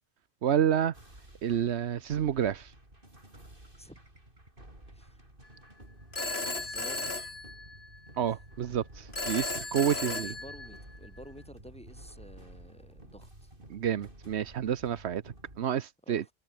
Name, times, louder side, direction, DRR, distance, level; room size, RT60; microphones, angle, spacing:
voice 1, 0.4-0.9 1.4-2.7 8.2-10.3 13.7-16.2, right 9 dB, 80° right, 1.1 m, -29 dB
sound 1, 0.9-15.6, right 1 dB, 55° right, 7.2 m, -52 dB
voice 2, 4.9-5.2 6.6-7.2 8.3-8.4 10.0-13.5 16.0-16.3, equal, 5° left, 7.3 m, -51 dB
Telephone, 6.1-8.1 9.1-11.1, left 3 dB, 70° left, 3.6 m, -35 dB
omnidirectional pair, 1.1 m